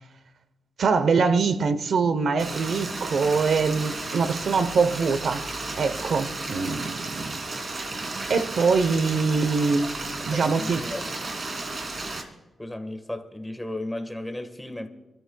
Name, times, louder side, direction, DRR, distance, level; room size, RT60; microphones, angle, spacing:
voice 1, 0.8-5.5 5.8-7.4 8.3-10.0 10.2-10.8, right 4 dB, 65° right, 0.9 m, -23 dB
Stream, 2.4-12.2, right 2 dB, 40° right, 2.6 m, -33 dB
voice 2, 10.3-11.0 12.6-14.9, left 1 dB, 5° left, 1.5 m, -34 dB
27.5 x 13.5 x 2.3 m
wide cardioid pair, 125°, 0 cm